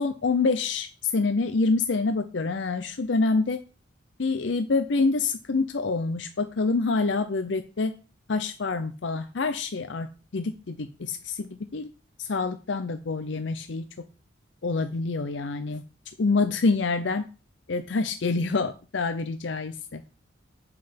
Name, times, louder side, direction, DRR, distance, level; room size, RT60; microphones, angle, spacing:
voice 1, 0.0-3.6 4.2-7.9 8.3-10.1 10.3-11.9 12.2-13.8 14.6-15.8 16.2-17.3 17.7-20.0, left 3 dB, 65° left, 8 dB, 0.6 m, -26 dB
7.6 x 5.6 x 5.2 m, 0.34 s
head